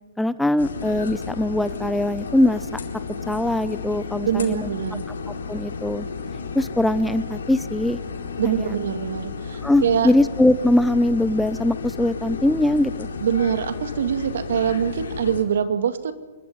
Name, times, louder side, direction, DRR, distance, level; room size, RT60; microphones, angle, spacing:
voice 1, 0.2-2.8 3.3-4.7 5.5-6.1 6.5-8.0 8.4-8.7 9.6-13.1, left 1 dB, 5° left, 15 dB, 0.6 m, -21 dB
sound 1, 0.6-15.4, left 5 dB, 85° left, 4.3 m, -33 dB
voice 2, 4.2-5.0 8.4-10.1 13.2-16.1, right 8 dB, 70° right, 8 dB, 2.2 m, -24 dB
27.0 x 13.0 x 9.6 m, 1.3 s
hypercardioid pair, 145°, 0 cm